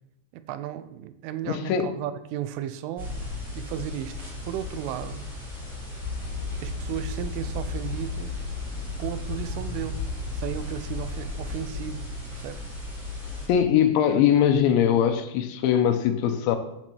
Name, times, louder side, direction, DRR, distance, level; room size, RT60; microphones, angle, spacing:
voice 1, 0.3-3.2 3.6-4.2 4.5-5.3 6.6-8.5 9.0-10.0 10.3-12.7, right 11 dB, 85° right, 12 dB, 3.1 m, -35 dB
voice 2, 1.4-1.9 13.5-16.6, left 9 dB, 80° left, 8 dB, 3.0 m, -21 dB
sound 1, 3.0-13.5, left 2 dB, 15° right, 4.2 m, -36 dB
sound 2, 6.0-11.6, left 4 dB, 40° left, 4.0 m, -35 dB
13.5 x 7.8 x 4.6 m, 0.88 s
omnidirectional pair, 5.6 m